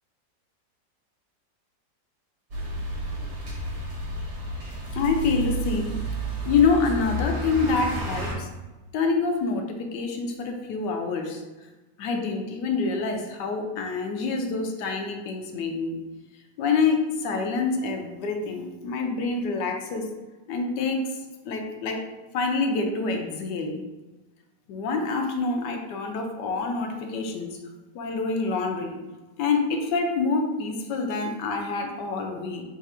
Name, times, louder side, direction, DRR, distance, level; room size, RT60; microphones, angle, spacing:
sound 1, 2.5-8.3, right 1 dB, 60° right, 1.3 m, -31 dB
voice 1, 4.9-6.0 6.4-8.5 8.9-11.4 12.0-16.0 16.6-20.1 20.5-21.1 21.4-22.1 22.3-23.8 24.7-27.6 27.9-28.9 29.4-32.6, left 4 dB, 75° left, 3 dB, 1.2 m, -26 dB
3.3 x 2.5 x 4.2 m, 1.2 s
omnidirectional pair, 2.0 m